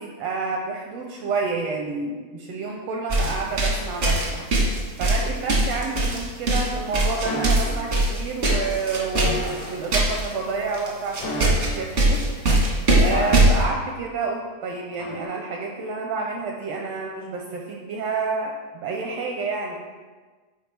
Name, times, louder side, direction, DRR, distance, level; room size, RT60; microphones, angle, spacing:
voice 1, 0.0-4.4 5.0-12.2 13.0-19.8, right 4 dB, 80° right, 1 dB, 1.5 m, -29 dB
sound 1, 3.1-10.3 10.7-10.9 11.1-13.6, right 1 dB, 60° right, 0.7 m, -21 dB
sound 2, 7.2-7.9 9.1-9.8 11.2-12.1 13.1-13.8 15.0-15.2, left 1 dB, 75° left, 2.3 m, -31 dB
9.3 x 4.5 x 3.4 m, 1.4 s
omnidirectional pair, 3.4 m